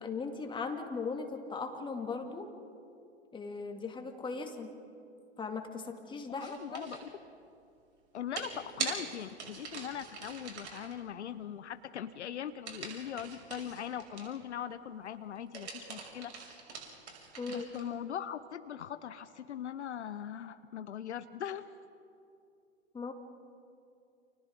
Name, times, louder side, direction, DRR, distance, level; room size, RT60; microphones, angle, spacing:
voice 1, 0.0-2.5 3.3-4.7 5.4-6.9 17.4-17.7 22.9-23.1, left 4 dB, 15° left, 4 dB, 2.3 m, -38 dB
voice 2, 6.4-7.1 8.1-16.6 17.5-21.6, left 9 dB, 70° left, 12 dB, 0.9 m, -41 dB
sound 1, 6.4-7.1 8.4-10.9 12.7-14.4 15.4-17.9, right 5 dB, 70° right, 6.5 m, -42 dB
30.0 x 28.5 x 3.8 m, 2.5 s
figure-of-eight pair, 105°, 35 cm